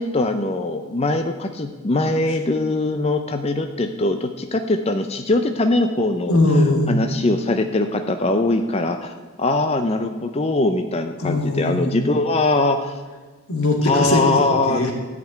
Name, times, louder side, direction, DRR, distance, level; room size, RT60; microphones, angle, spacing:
voice 1, 0.0-6.4 6.9-9.1 9.4-13.0 13.8-14.9, left 2 dB, 30° left, 6 dB, 0.5 m, -21 dB
voice 2, 6.3-6.9 11.2-12.0 13.5-14.9, left 2 dB, 90° left, 1 dB, 2.4 m, -20 dB
14.0 x 5.2 x 9.1 m, 1.4 s
head